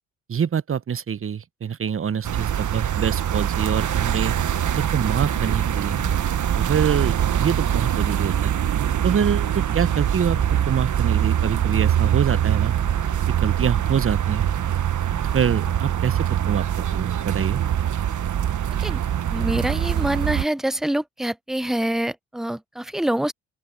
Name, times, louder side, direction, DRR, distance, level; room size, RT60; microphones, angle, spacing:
voice 1, 0.3-4.3 4.9-6.0 6.6-8.5 9.0-10.4 10.7-12.7 13.3-14.5 15.3-17.6, right 7 dB, 35° right, 0.9 m, -25 dB
sound 1, 2.2-20.5, right 10 dB, 55° right, 1.3 m, -23 dB
sound 2, 4.2-18.4, left 7 dB, 55° left, 5.4 m, -46 dB
voice 2, 19.3-23.3, right 1 dB, ahead, 0.6 m, -25 dB
open air
supercardioid pair, 55°, 37 cm